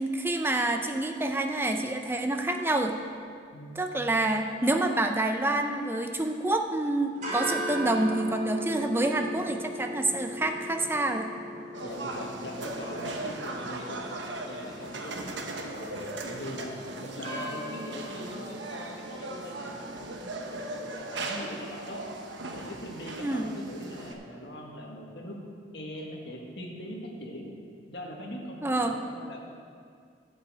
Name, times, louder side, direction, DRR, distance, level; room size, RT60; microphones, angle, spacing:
voice 1, 0.0-3.0 3.8-11.3 23.2-23.5 28.6-29.0, right 2 dB, 10° right, 5 dB, 0.5 m, -27 dB
voice 2, 3.5-3.8 11.8-14.1 14.4-20.3 20.7-22.0 22.5-25.4 25.7-27.5 27.9-29.4, equal, 55° left, -1 dB, 1.6 m, -41 dB
sound 1, 7.1-20.9, equal, 40° right, 3.0 m, -39 dB
sound 2, 11.7-24.1, right 2 dB, 65° right, 1.0 m, -38 dB
11.5 x 5.6 x 7.8 m, 2.2 s
head